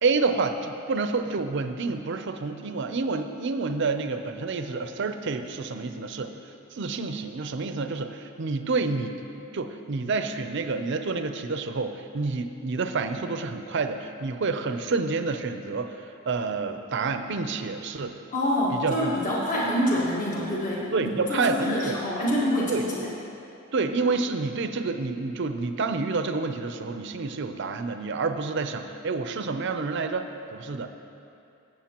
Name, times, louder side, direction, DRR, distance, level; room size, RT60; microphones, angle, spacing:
voice 1, 0.0-6.4 6.7-18.2 18.7-19.1 20.9-22.0 22.7-22.8 23.7-30.9, right 4 dB, 60° right, 8 dB, 0.5 m, -28 dB
voice 2, 18.3-23.1, equal, 40° left, -6 dB, 1.5 m, -26 dB
16.0 x 7.9 x 2.9 m, 2.7 s
head